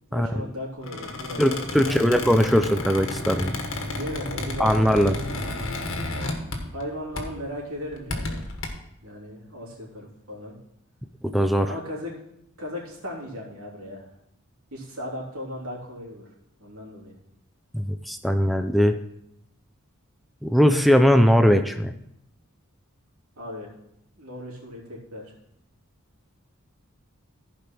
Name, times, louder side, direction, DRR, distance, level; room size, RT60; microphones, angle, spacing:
voice 1, 0.1-1.6 1.8-2.4 3.9-5.2 6.7-8.4 9.0-10.6 11.6-12.1 12.6-14.2 14.7-16.3 16.6-17.1 23.4-23.8 24.2-25.3, left 1 dB, 75° right, -4 dB, 3.4 m, -37 dB
Squeak, 0.8-6.9 7.2-7.4 7.9-8.7, left 2 dB, 65° left, 1.6 m, -32 dB
voice 2, 1.4-3.5 4.6-5.2 11.2-11.7 17.7-18.9 20.4-21.9, equal, ahead, 6 dB, 0.4 m, -20 dB
15.0 x 5.2 x 4.4 m, 0.76 s
head